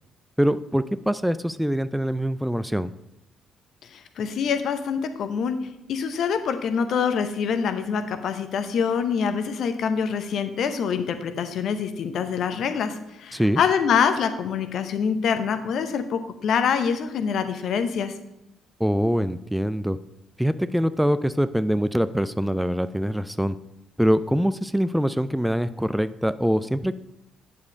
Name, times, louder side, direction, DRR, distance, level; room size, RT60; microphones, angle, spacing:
voice 1, 0.4-2.9 13.3-13.6 18.8-20.0 20.4-23.6 24.0-26.9, equal, 5° right, 13 dB, 0.4 m, -24 dB
voice 2, 3.9-18.1, left 6 dB, 60° left, 9 dB, 0.7 m, -25 dB
8.3 x 4.8 x 5.2 m, 0.89 s
hypercardioid pair, 45°, 0 cm